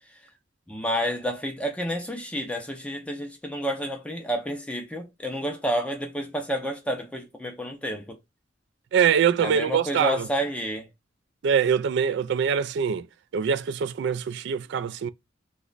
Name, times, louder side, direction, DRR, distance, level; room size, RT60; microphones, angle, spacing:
voice 1, 0.7-8.2 9.4-10.9, equal, 5° left, 0.5 m, -30 dB
voice 2, 8.9-10.3 11.4-13.1 13.3-15.1, right 7 dB, 65° right, 0.3 m, -23 dB
3.0 x 2.2 x 3.8 m
head